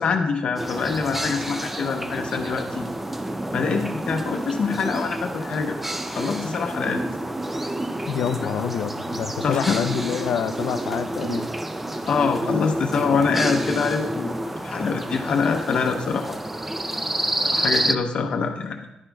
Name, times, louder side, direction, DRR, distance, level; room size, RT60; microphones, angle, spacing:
voice 1, 0.0-2.8 3.5-5.8 6.1-7.0 8.4-8.5 9.4-9.8 12.1-14.4 14.6-16.4 17.4-18.9, left 5 dB, 50° left, 3 dB, 0.7 m, -25 dB
sound 1, 0.6-18.0, right 1 dB, 10° right, 0.3 m, -29 dB
voice 2, 8.1-11.5, left 8 dB, 85° left, 10 dB, 0.5 m, -27 dB
11.0 x 10.0 x 2.3 m, 0.90 s
wide cardioid pair, 165°, 2 cm